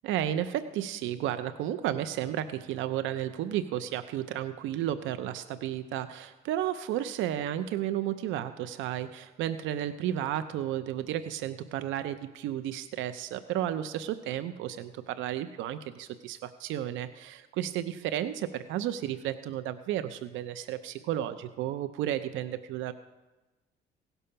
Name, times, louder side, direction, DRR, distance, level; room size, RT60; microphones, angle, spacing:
voice 1, 0.0-22.9, right 11 dB, 90° right, 11 dB, 0.6 m, -33 dB
17.0 x 6.9 x 5.6 m, 1.2 s
cardioid pair, 115°, 19 cm